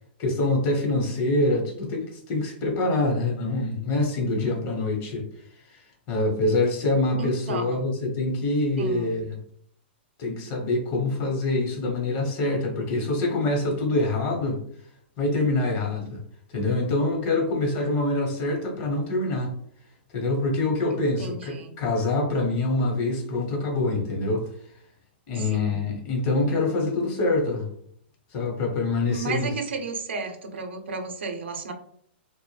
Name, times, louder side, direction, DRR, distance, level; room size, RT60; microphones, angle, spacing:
voice 1, 0.2-5.2 6.1-9.4 10.2-14.6 15.2-16.2 16.5-19.5 20.1-24.5 25.3-27.7 28.3-29.5, left 2 dB, 40° left, 1 dB, 0.8 m, -25 dB
voice 2, 7.2-7.8 8.8-9.2 20.9-21.7 25.3-25.8 29.1-31.7, right 4 dB, 85° right, 5 dB, 0.6 m, -33 dB
2.2 x 2.0 x 3.1 m, 0.63 s
hypercardioid pair, 135°, 6 cm